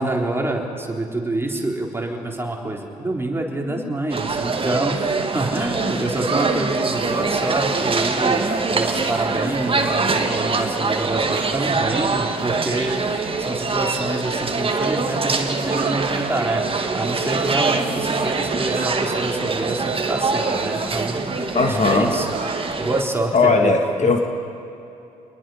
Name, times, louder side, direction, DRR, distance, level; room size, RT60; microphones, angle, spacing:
voice 1, 0.0-21.3 21.7-23.7 24.0-24.1, right 2 dB, 10° right, 0 dB, 3.9 m, -27 dB
sound 1, 4.1-23.0, right 4 dB, 25° right, 2.1 m, -23 dB
sound 2, 15.7-16.0 17.0-17.3 18.7-19.1 20.3-21.1 22.3-22.5, right 5 dB, 45° right, 3.4 m, -32 dB
voice 2, 21.6-22.1 23.3-24.2, left 4 dB, 35° left, 4 dB, 1.9 m, -18 dB
28.0 x 21.0 x 5.7 m, 2.8 s
hypercardioid pair, 50°, 20 cm